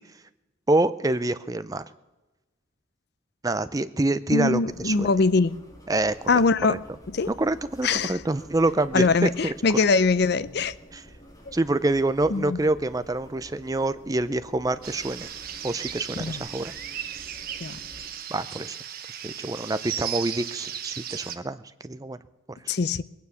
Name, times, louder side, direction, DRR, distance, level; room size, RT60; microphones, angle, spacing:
voice 1, 0.7-1.8 3.4-5.1 5.9-6.4 6.7-6.8 7.3-9.5 10.9-11.0 11.5-15.3 15.6-16.7 18.3-18.8 19.2-22.2 22.5-22.6, right 2 dB, 15° right, 0.5 m, -26 dB
voice 2, 4.3-5.6 6.3-6.8 7.1-7.3 7.8-8.2 8.9-10.7 12.3-12.6 16.2-16.4 17.6-17.8 22.7-23.0, left 4 dB, 55° left, 0.5 m, -22 dB
sound 1, 4.7-18.1, equal, 20° left, 3.0 m, -49 dB
sound 2, 14.8-21.4, right 10 dB, 45° right, 0.9 m, -36 dB
21.0 x 9.5 x 7.0 m
head